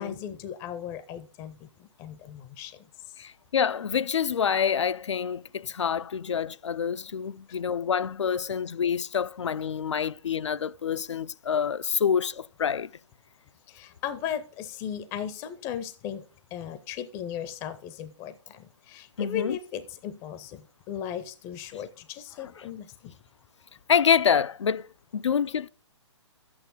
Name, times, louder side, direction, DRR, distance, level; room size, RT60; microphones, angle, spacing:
voice 1, 0.0-3.1 7.5-7.6 13.7-16.3 16.5-23.1, left 9 dB, 20° left, 0.5 m, -37 dB
voice 2, 3.2-12.9 19.2-19.6 22.4-22.5 23.9-25.7, left 7 dB, 70° left, 0.4 m, -27 dB
11.0 x 8.6 x 4.0 m
figure-of-eight pair, 130°, 16 cm